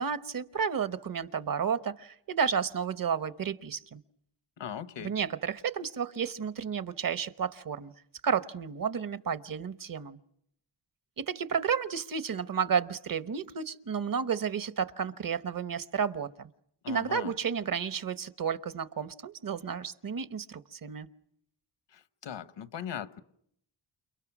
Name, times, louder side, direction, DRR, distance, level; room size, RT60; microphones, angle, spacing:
voice 1, 0.0-4.0 5.0-7.9 8.2-10.2 11.2-16.5 16.9-21.1, right 6 dB, 50° right, 13 dB, 1.0 m, -32 dB
voice 2, 4.6-5.1 16.8-17.3 21.9-23.2, left 8 dB, 85° left, 12 dB, 1.3 m, -39 dB
29.5 x 29.5 x 6.1 m, 0.73 s
wide cardioid pair, 115°, 43 cm